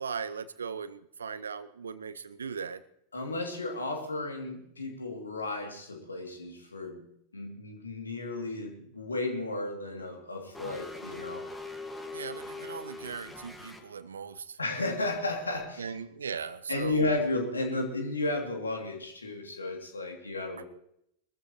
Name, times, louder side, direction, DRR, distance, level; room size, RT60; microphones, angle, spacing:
voice 1, 0.0-2.8 12.1-14.6 15.8-17.1 20.6-20.7, right 6 dB, 70° right, 16 dB, 0.7 m, -38 dB
voice 2, 3.1-7.0 7.3-11.5 14.6-15.9 16.7-20.6, left 2 dB, 75° left, 3 dB, 2.8 m, -33 dB
sound 1, 10.5-13.8, left 3 dB, 10° left, 1.9 m, -41 dB
22.5 x 14.0 x 3.1 m, 0.73 s
figure-of-eight pair, 90°, 0 cm